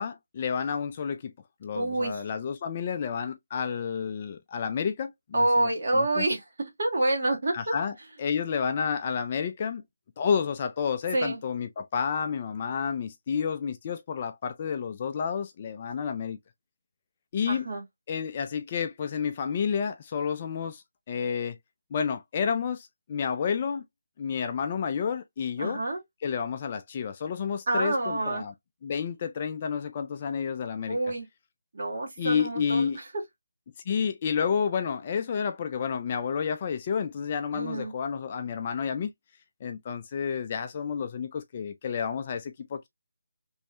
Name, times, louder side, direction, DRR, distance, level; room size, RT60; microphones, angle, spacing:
voice 1, 0.0-1.3 1.6-6.3 7.5-9.8 10.2-16.4 17.3-17.7 18.1-21.6 21.9-23.8 24.2-25.8 26.2-28.5 28.8-31.0 32.2-33.0 33.9-39.1 39.6-42.9, left 6 dB, 25° left, 0.3 m, -30 dB
voice 2, 1.7-2.2 5.3-6.4 6.8-7.7 11.1-11.4 17.5-17.8 25.6-26.0 27.7-28.4 30.9-31.3 31.7-33.0 37.5-37.9, right 2 dB, 45° right, 1.5 m, -27 dB
3.1 x 2.7 x 3.5 m
hypercardioid pair, 175°, 0 cm